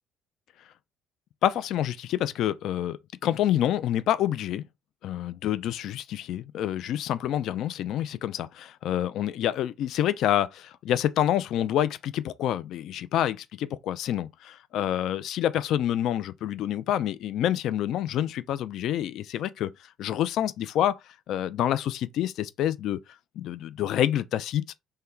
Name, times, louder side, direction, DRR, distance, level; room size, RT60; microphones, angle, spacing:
voice 1, 1.4-4.7 5.0-19.7 20.0-21.0 21.3-23.0 23.4-24.6, left 11 dB, 60° left, 0.3 m, -27 dB
3.1 x 2.1 x 3.7 m
hypercardioid pair, 55°, 0 cm